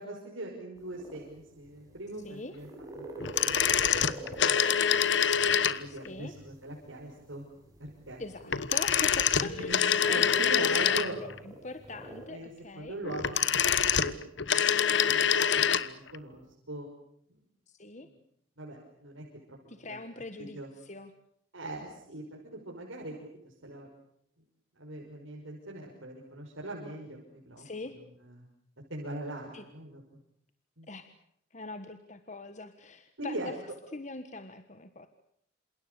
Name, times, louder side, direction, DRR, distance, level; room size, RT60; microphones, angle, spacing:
voice 1, 0.0-2.7 2.9-4.6 5.7-7.4 7.8-8.2 9.4-9.8 10.1-11.2 12.3-14.3 14.5-14.8 15.0-15.3 15.5-16.9 17.3-17.4 18.0-18.1 18.6-20.0 20.4-20.7 21.5-23.2 23.4-23.9 24.8-28.4 28.9-30.0 30.8-30.9 33.2-33.5, right 1 dB, 85° right, -1 dB, 5.8 m, -41 dB
sound 1, 0.8-12.3, right 1 dB, 20° right, 7.4 m, -48 dB
sound 2, 3.2-6.1 8.5-11.4 13.0-16.2, left 8 dB, 65° left, 1.2 m, -25 dB
voice 2, 5.8-6.3 8.2-10.7 11.2-13.0 17.7-18.1 19.7-21.1 27.6-28.0 29.5-29.6 30.9-31.1 31.5-33.5 33.9-35.1, left 2 dB, 35° left, 9 dB, 1.4 m, -42 dB
28.0 x 27.5 x 7.0 m, 0.71 s
head